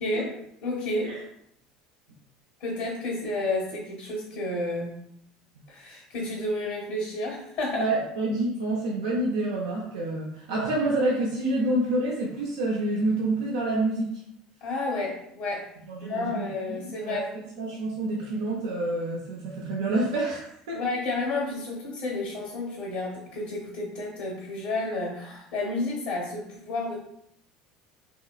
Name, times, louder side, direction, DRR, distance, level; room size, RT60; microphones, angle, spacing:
voice 1, 0.0-0.3 0.6-1.2 2.6-5.0 5.7-7.9 14.6-15.7 16.0-17.3 20.7-27.0, left 2 dB, 60° left, -4 dB, 1.0 m, -31 dB
voice 2, 7.7-14.2 15.9-20.8, right 2 dB, 75° right, -3 dB, 0.6 m, -28 dB
3.1 x 2.8 x 2.3 m, 0.73 s
hypercardioid pair, 70°, 3 cm